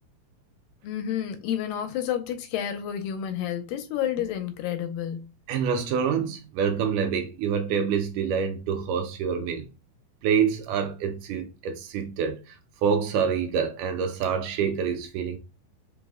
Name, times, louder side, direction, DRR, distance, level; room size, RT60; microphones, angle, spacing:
voice 1, 0.8-5.3, left 10 dB, 85° left, 2.3 m, -30 dB
voice 2, 5.5-9.7 10.2-12.6 12.8-15.4, right 7 dB, 80° right, 2.0 m, -26 dB
5.3 x 2.1 x 3.5 m
omnidirectional pair, 3.9 m